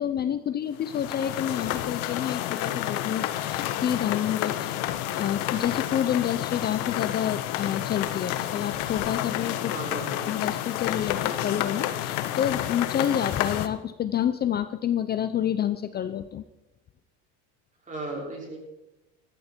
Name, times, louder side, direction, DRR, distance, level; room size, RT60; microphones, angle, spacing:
voice 1, 0.0-4.8 5.1-9.8 10.3-16.4, left 10 dB, 30° left, 11 dB, 0.6 m, -28 dB
sound 1, 0.8-13.7, left 12 dB, 90° left, 1.3 m, -30 dB
sound 2, 5.3-10.4, left 6 dB, 55° left, 3.7 m, -50 dB
voice 2, 9.7-10.4 17.9-18.6, right 2 dB, 20° right, -2 dB, 5.5 m, -36 dB
18.0 x 14.0 x 4.4 m, 1.0 s
cardioid pair, 140°, 35 cm